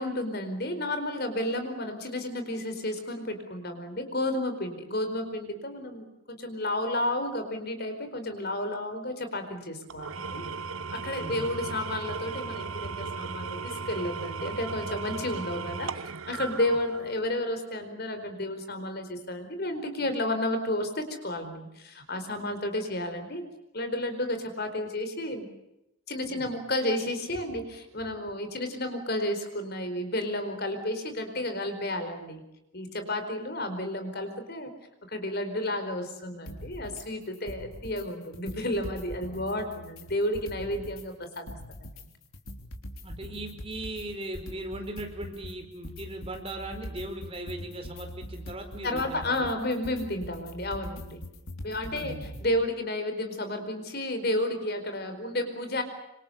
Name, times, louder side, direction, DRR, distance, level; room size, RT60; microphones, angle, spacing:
voice 1, 0.0-10.4 10.9-23.4 23.7-25.5 26.1-32.4 32.7-34.7 35.1-42.1 48.8-51.2 51.6-55.8, left 1 dB, 50° left, 7 dB, 4.6 m, -32 dB
Engine / Tools, 9.9-17.4, right 4 dB, 75° right, 0.9 m, -36 dB
sound 1, 36.5-37.0 37.3-38.0 38.3-41.0 41.3-52.5, left 1 dB, 85° left, 3.6 m, -42 dB
voice 2, 43.0-49.5 51.9-52.4, right 1 dB, 25° right, 5 dB, 4.7 m, -39 dB
26.5 x 26.5 x 7.0 m, 0.88 s
head